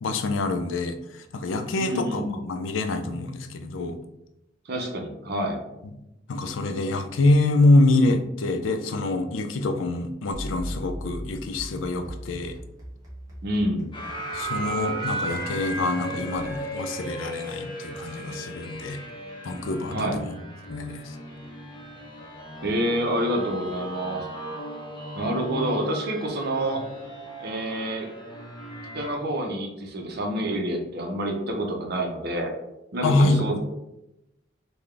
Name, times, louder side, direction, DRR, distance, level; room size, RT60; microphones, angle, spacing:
voice 1, 0.0-4.0 6.3-12.6 14.3-19.0 19.4-20.4 20.7-21.2 33.0-33.4, left 2 dB, 85° left, 8 dB, 0.4 m, -25 dB
voice 2, 1.7-2.4 4.7-5.6 13.4-13.9 19.9-20.2 22.6-24.3 25.1-26.8 27.4-28.1 28.9-32.5 32.9-33.6, right 1 dB, 55° right, 2 dB, 0.7 m, -28 dB
sound 1, 10.3-16.7, equal, 20° right, 1.0 m, -40 dB
sound 2, 13.9-29.2, right 1 dB, 25° left, 0.6 m, -36 dB
3.9 x 2.2 x 3.2 m, 0.89 s
head